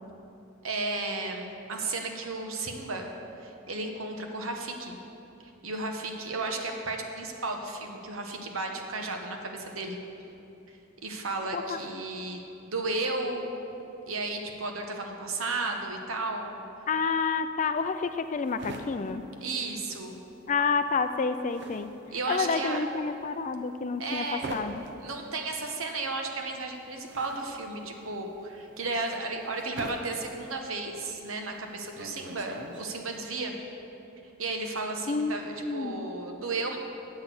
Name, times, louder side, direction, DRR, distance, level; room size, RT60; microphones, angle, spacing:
voice 1, 0.6-3.1 3.4-5.0 5.6-10.0 10.7-10.8 11.0-13.6 14.1-16.6 19.4-20.2 22.1-22.8 24.0-24.5 25.0-33.5 34.4-36.8, right 3 dB, 80° right, 3 dB, 1.1 m, -34 dB
voice 2, 16.9-19.2 20.5-21.9 22.3-24.8 35.1-36.1, left 4 dB, 35° left, 10 dB, 0.4 m, -29 dB
sound 1, 17.8-20.3 20.6-33.2, right 2 dB, 55° right, 0.8 m, -44 dB
8.6 x 6.1 x 7.7 m, 2.9 s
head